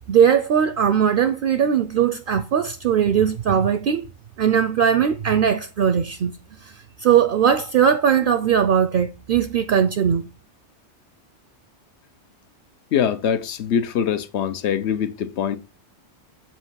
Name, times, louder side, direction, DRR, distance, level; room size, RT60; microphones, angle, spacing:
voice 1, 0.1-4.1 4.4-6.4 6.6-10.3, right 8 dB, 60° right, 0.6 m, -19 dB
voice 2, 12.9-15.6, left 8 dB, 75° left, 1.0 m, -23 dB
7.4 x 3.0 x 5.6 m
omnidirectional pair, 1.2 m